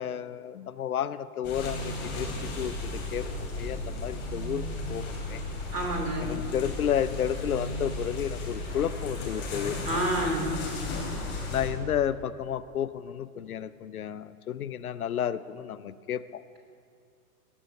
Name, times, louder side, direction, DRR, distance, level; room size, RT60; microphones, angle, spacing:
voice 1, 0.0-3.3 3.5-5.4 6.2-9.8 11.5-16.4, left 9 dB, 65° left, 15 dB, 0.6 m, -32 dB
sound 1, 1.4-11.7, left 2 dB, 25° left, 2.9 m, -35 dB
voice 2, 5.7-6.3 9.8-10.5, right 1 dB, 80° right, -1 dB, 3.0 m, -28 dB
18.0 x 6.2 x 5.5 m, 2.3 s
figure-of-eight pair, 110°, 46 cm